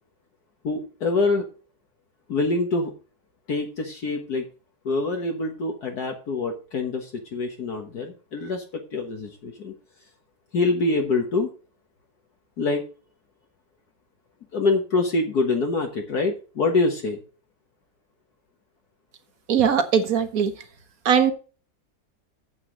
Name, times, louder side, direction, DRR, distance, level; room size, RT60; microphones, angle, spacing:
voice 1, 0.6-1.5 2.3-2.9 3.5-4.5 4.9-8.6 8.9-9.7 10.5-11.5 12.6-12.8 14.5-17.2, left 3 dB, 60° left, 2 dB, 1.9 m, -25 dB
voice 2, 19.5-20.5 21.0-21.3, right 7 dB, 55° right, 9 dB, 1.6 m, -20 dB
9.5 x 8.3 x 3.9 m, 0.36 s
omnidirectional pair, 2.0 m